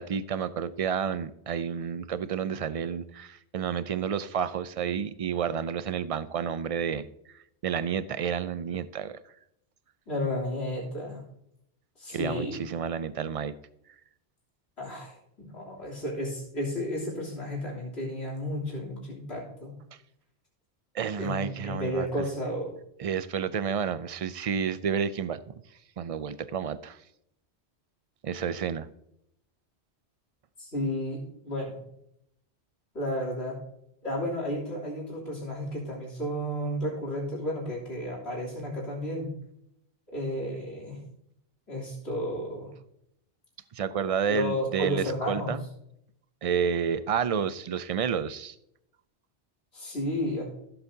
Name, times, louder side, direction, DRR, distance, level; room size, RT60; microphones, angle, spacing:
voice 1, 0.0-7.1 7.6-9.2 12.1-13.5 20.9-22.1 23.0-25.5 26.0-27.0 28.2-28.9 43.7-45.6 46.4-48.6, right 7 dB, 60° right, 14 dB, 0.3 m, -30 dB
voice 2, 10.1-11.2 12.0-12.6 14.8-19.7 21.2-22.7 30.6-31.8 32.9-33.6 34.0-39.3 40.1-41.0 41.7-42.7 44.3-45.6 49.7-50.4, left 1 dB, 70° left, -4 dB, 3.5 m, -32 dB
15.0 x 7.8 x 2.8 m, 0.77 s
omnidirectional pair, 1.1 m